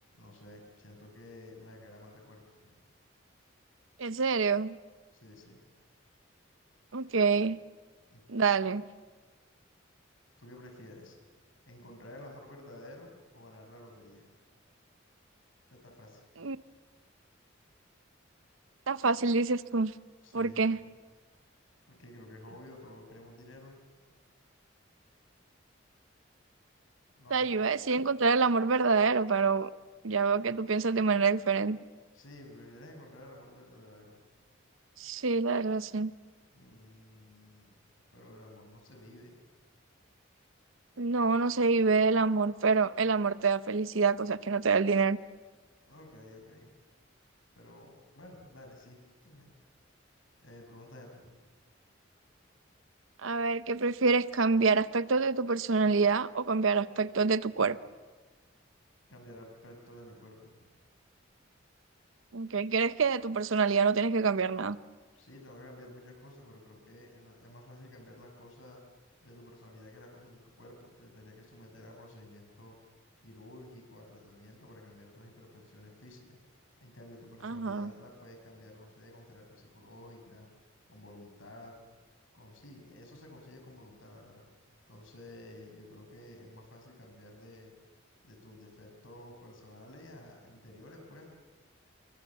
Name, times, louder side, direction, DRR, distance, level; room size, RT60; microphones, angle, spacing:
voice 1, 0.1-2.8 5.1-5.6 8.1-8.2 10.4-11.2 11.7-14.3 15.7-16.2 20.2-20.7 21.9-23.8 27.1-27.5 32.1-34.2 36.5-37.8 38.1-39.4 45.8-46.7 47.5-49.5 50.4-51.4 59.1-60.6 65.1-68.8 69.2-72.8 73.2-76.4 76.8-80.5 80.9-81.8 82.3-84.4 84.9-87.7 88.2-91.3, left 1 dB, 80° left, 3 dB, 6.0 m, -52 dB
voice 2, 4.0-4.8 6.9-7.6 8.3-8.8 16.4-16.6 18.9-19.9 20.3-20.8 27.3-29.7 30.0-31.8 35.0-36.1 41.0-45.2 53.2-57.8 62.3-64.8 77.4-77.9, right 4 dB, 80° right, 15 dB, 0.8 m, -27 dB
27.5 x 23.5 x 7.4 m, 1.4 s
head